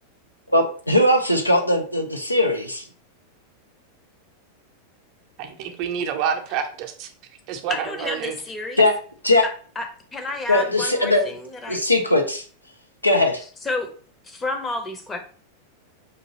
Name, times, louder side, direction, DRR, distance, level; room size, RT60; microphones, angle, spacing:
voice 1, 0.5-2.9 8.8-8.9 9.2-9.4 10.5-11.2 11.7-12.4 13.0-13.4, left 1 dB, 90° left, 3 dB, 0.6 m, -19 dB
voice 2, 5.4-7.1 7.5-8.4, right 8 dB, 45° right, 4 dB, 0.6 m, -28 dB
voice 3, 7.7-8.8 9.8-11.8 13.6-13.9 14.2-15.2, left 2 dB, 15° left, 5 dB, 0.7 m, -30 dB
5.2 x 2.6 x 2.8 m, 0.42 s
figure-of-eight pair, 90°, 0 cm